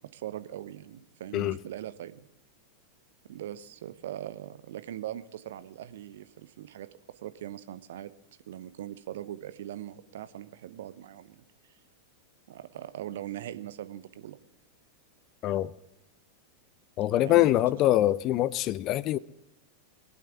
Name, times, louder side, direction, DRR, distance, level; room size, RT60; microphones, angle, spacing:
voice 1, 0.1-2.2 3.3-6.9 7.2-8.1 8.5-11.8 12.5-14.4 17.2-17.5, right 12 dB, 60° right, 0.9 m, -41 dB
voice 2, 17.0-19.2, left 14 dB, 35° left, 0.5 m, -24 dB
23.0 x 8.6 x 7.0 m
figure-of-eight pair, 90°, 0 cm